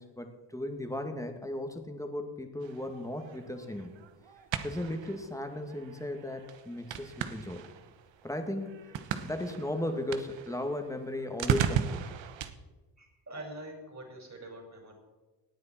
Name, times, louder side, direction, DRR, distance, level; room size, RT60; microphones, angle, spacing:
voice 1, 0.0-3.9 4.6-7.7 8.2-12.1, left 1 dB, 5° left, 5 dB, 2.1 m, -36 dB
sound 1, 2.6-12.5, right 9 dB, 75° right, 1.1 m, -37 dB
voice 2, 13.0-14.9, right 1 dB, 35° right, 1 dB, 5.4 m, -45 dB
18.0 x 9.6 x 4.4 m, 1.2 s
cardioid pair, 70°, 45 cm